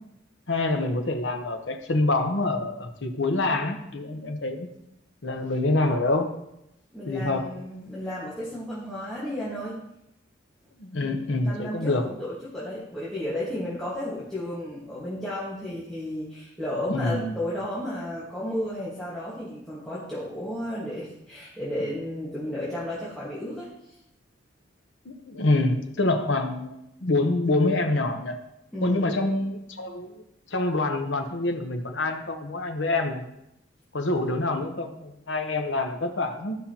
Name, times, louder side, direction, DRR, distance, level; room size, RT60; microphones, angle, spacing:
voice 1, 0.5-4.7 5.2-6.3 7.1-7.5 10.8-12.0 16.9-17.3 25.0-28.4 28.8-30.2 30.5-33.2 33.9-36.6, left 2 dB, 70° left, 4 dB, 0.9 m, -26 dB
voice 2, 6.9-9.8 11.0-11.2 11.4-23.7 28.7-29.1 34.1-34.2, left 1 dB, 5° left, -9 dB, 1.6 m, -33 dB
13.5 x 5.6 x 2.9 m, 0.82 s
head